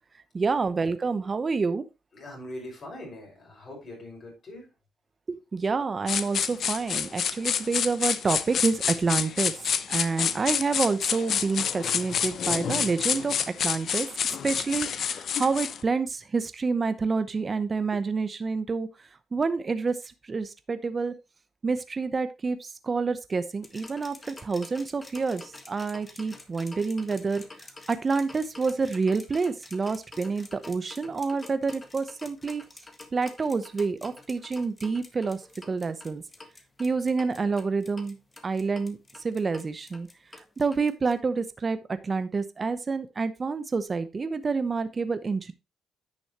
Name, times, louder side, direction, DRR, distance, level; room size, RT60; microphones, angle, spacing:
voice 1, 0.3-1.8 5.3-9.5 9.9-14.1 14.4-18.9 19.3-20.0 20.3-21.1 21.6-27.4 27.9-32.6 33.1-35.4 35.7-36.2 36.8-38.2 38.4-39.0 39.2-40.1 40.6-41.8 42.0-45.5, right 4 dB, 35° right, 11 dB, 0.8 m, -28 dB
voice 2, 2.1-4.7, left 1 dB, 45° left, -1 dB, 6.1 m, -42 dB
sound 1, 6.1-15.8, left 8 dB, 60° left, 0.7 m, -28 dB
sound 2, 23.6-41.1, left 2 dB, 25° left, 1.4 m, -47 dB
9.9 x 6.3 x 3.0 m, 0.25 s
cardioid pair, 90°, 0 cm